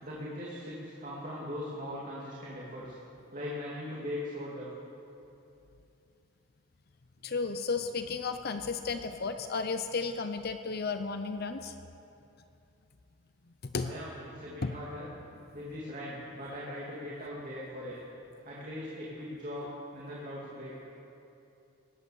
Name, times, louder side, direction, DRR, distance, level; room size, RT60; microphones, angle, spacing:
voice 1, 0.0-2.9 3.3-4.7 13.8-15.1 15.5-18.0 18.4-20.8, left 1 dB, 40° right, -6 dB, 2.7 m, -40 dB
voice 2, 7.2-11.7 13.6-13.9 14.6-14.7, left 4 dB, 50° left, 8 dB, 0.6 m, -33 dB
18.5 x 11.0 x 7.1 m, 2.8 s
head